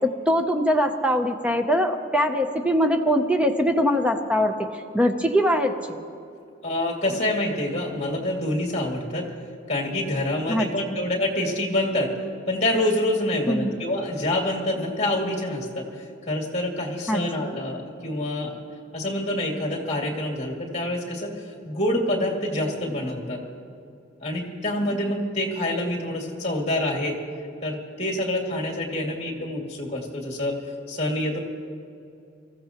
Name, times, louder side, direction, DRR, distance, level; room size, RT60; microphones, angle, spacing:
voice 1, 0.0-6.0 10.5-11.0 13.5-13.7 17.1-17.5, equal, 5° right, 5 dB, 0.6 m, -23 dB
voice 2, 6.6-9.3 9.7-12.1 12.5-15.9 16.3-18.6 18.9-21.3 21.6-23.4 24.2-27.2 27.6-30.6 30.9-31.4, left 1 dB, 30° left, -1 dB, 2.2 m, -26 dB
24.0 x 14.5 x 2.9 m, 2.5 s
head